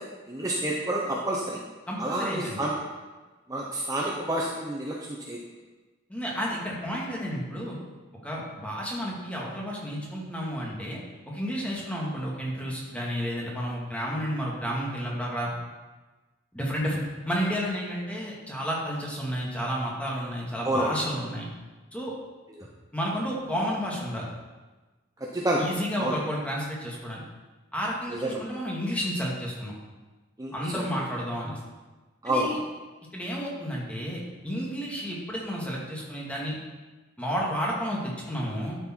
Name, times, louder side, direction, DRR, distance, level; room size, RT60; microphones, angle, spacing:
voice 1, 0.0-1.6 2.0-2.8 3.5-5.4 20.6-20.9 25.2-25.6 26.0-26.2 28.1-28.4 30.4-30.8 32.2-32.5, right 1 dB, 20° right, -3 dB, 0.9 m, -29 dB
voice 2, 1.9-2.6 6.1-7.8 8.2-11.0 11.3-15.5 16.5-21.5 21.9-22.1 22.9-24.3 25.6-27.2 27.7-29.7 30.5-31.6 32.2-32.6 33.1-36.6 37.2-38.8, equal, 5° left, -4 dB, 2.0 m, -31 dB
12.0 x 6.7 x 4.5 m, 1.2 s
head